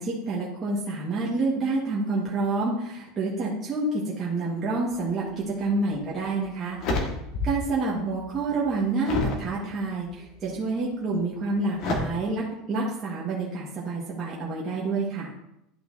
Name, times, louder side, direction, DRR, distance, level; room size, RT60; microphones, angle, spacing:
voice 1, 0.0-6.8 7.4-15.3, right 3 dB, 20° right, -6 dB, 1.5 m, -28 dB
sound 1, 5.8-5.9 6.4-7.7 8.1-9.5 10.1-10.5 11.8-12.0, left 2 dB, 40° left, 1.5 m, -30 dB
11.5 x 5.8 x 2.7 m, 0.82 s
supercardioid pair, 170°, 0 cm